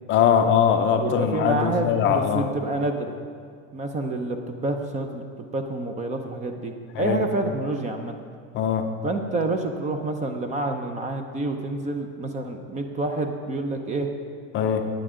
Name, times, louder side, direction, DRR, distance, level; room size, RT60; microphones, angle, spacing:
voice 1, 0.1-2.5 6.9-7.2 8.5-8.8 14.5-14.9, left 8 dB, 30° left, 6 dB, 0.6 m, -21 dB
voice 2, 0.9-3.2 3.7-8.1 9.0-14.1, right 2 dB, 20° right, 5 dB, 0.6 m, -28 dB
15.5 x 9.2 x 3.7 m, 2.1 s
supercardioid pair, 145°, 40 cm